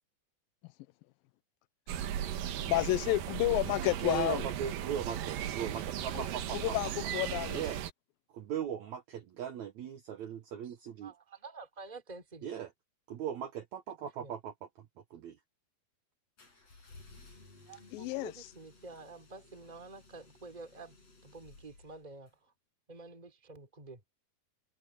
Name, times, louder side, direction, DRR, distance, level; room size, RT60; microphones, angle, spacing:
voice 1, 1.9-2.4 2.7-4.5 6.1-7.6 17.9-18.5, left 18 dB, 90° left, 2.1 m, -31 dB
sound 1, 1.9-7.9, right 10 dB, 65° right, 2.6 m, -37 dB
voice 2, 4.0-6.7 7.5-7.8 8.3-11.1 12.4-12.7 13.1-14.5 15.1-15.3, right 9 dB, 85° right, 1.6 m, -38 dB
voice 3, 10.6-12.6 14.2-14.3 17.6-21.0 21.2-22.5 22.9-24.0, right 3 dB, 10° right, 2.6 m, -49 dB
sound 2, 16.4-22.4, left 3 dB, 35° left, 8.3 m, -58 dB
omnidirectional pair, 4.8 m